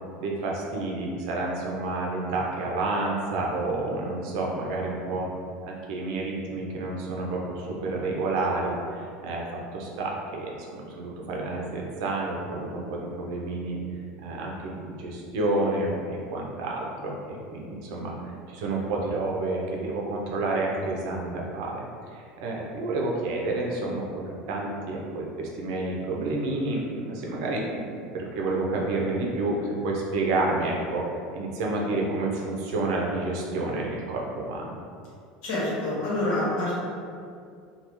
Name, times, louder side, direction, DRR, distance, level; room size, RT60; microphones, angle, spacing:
voice 1, 0.2-5.3 5.7-13.8 14.2-18.1 18.5-21.9 22.1-24.2 24.5-31.0 31.3-34.8, right 2 dB, 70° right, -1 dB, 0.6 m, -29 dB
voice 2, 35.4-36.8, left 1 dB, 60° left, -7 dB, 1.2 m, -27 dB
3.4 x 2.3 x 2.9 m, 2.3 s
cardioid pair, 165°, 3 cm